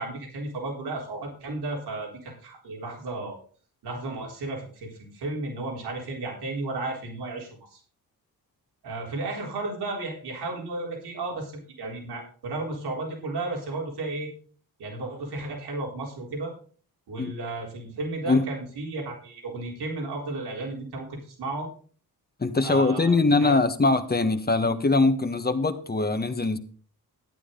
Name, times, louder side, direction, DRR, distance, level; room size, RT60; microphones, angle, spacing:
voice 1, 0.0-3.4 3.8-7.8 8.8-14.3 14.8-16.5 17.1-21.7 22.6-23.5 24.6-24.7, right 2 dB, 90° right, -1 dB, 4.0 m, -34 dB
voice 2, 22.4-26.6, left 3 dB, 25° left, 9 dB, 1.3 m, -22 dB
12.0 x 9.4 x 3.9 m, 0.42 s
cardioid pair, 85°, 38 cm